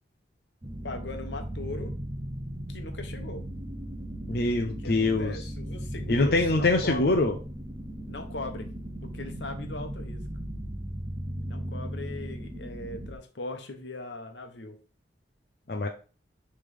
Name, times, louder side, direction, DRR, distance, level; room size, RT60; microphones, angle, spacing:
sound 1, 0.6-13.2, right 1 dB, 25° right, 0.8 m, -37 dB
voice 1, 0.8-1.9 2.7-3.4 4.6-7.2 8.1-8.7 9.0-10.2 11.4-14.8, left 2 dB, 80° left, 6 dB, 1.1 m, -39 dB
voice 2, 4.3-5.4 6.1-7.4 15.7-15.9, left 2 dB, 55° left, 4 dB, 0.6 m, -24 dB
9.9 x 3.4 x 3.5 m, 0.36 s
head